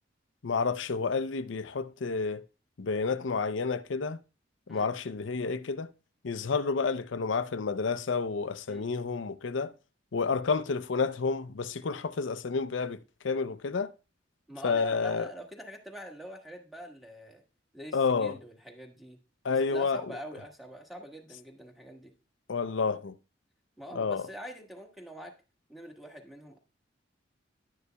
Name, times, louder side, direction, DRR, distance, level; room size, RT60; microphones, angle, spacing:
voice 1, 0.4-2.4 2.8-4.2 4.7-5.9 6.2-9.7 10.1-13.0 13.2-13.9 14.6-15.3 17.9-18.3 19.4-20.0 22.5-23.1 23.9-24.3, left 4 dB, 75° left, 0.6 m, -30 dB
voice 2, 14.5-17.4 17.7-19.2 19.5-22.1 23.8-25.3 25.7-26.6, equal, ahead, 1.4 m, -45 dB
11.0 x 9.5 x 2.3 m
head